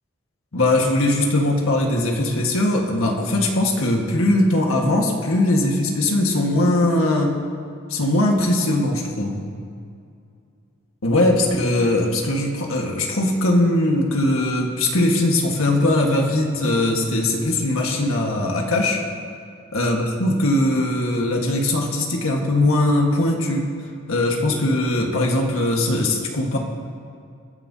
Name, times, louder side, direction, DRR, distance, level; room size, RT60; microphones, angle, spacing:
voice 1, 0.5-7.4 7.9-9.4 11.0-19.0 19.7-23.7 24.1-26.6, left 1 dB, 80° left, 0 dB, 1.6 m, -20 dB
23.5 x 9.6 x 2.8 m, 2.4 s
head